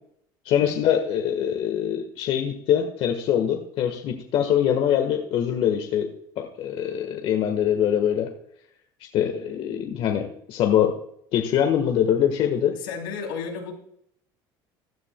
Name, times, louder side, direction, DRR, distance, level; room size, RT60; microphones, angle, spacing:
voice 1, 0.4-6.1 6.4-8.3 9.1-10.9 11.3-12.7, left 9 dB, 60° left, 4 dB, 1.3 m, -23 dB
voice 2, 12.7-13.7, left 6 dB, 90° left, 2 dB, 3.1 m, -33 dB
16.0 x 11.0 x 2.2 m, 0.69 s
supercardioid pair, 90°, 11 cm